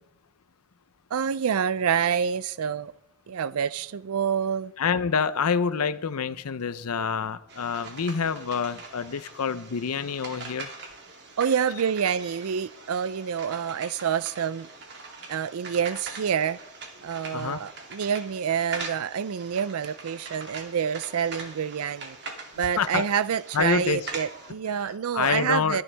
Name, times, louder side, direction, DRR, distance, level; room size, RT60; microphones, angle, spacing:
voice 1, 1.1-2.9 3.3-4.7 11.4-14.7 15.3-16.6 17.0-22.2 22.6-25.8, right 7 dB, 80° right, 0.4 m, -27 dB
voice 2, 4.8-10.7 17.3-17.6 22.8-23.0 23.5-24.1 24.7-25.8, left 6 dB, 90° left, 0.6 m, -27 dB
sound 1, 7.5-24.5, right 3 dB, 50° right, 2.5 m, -42 dB
23.0 x 11.5 x 3.4 m
head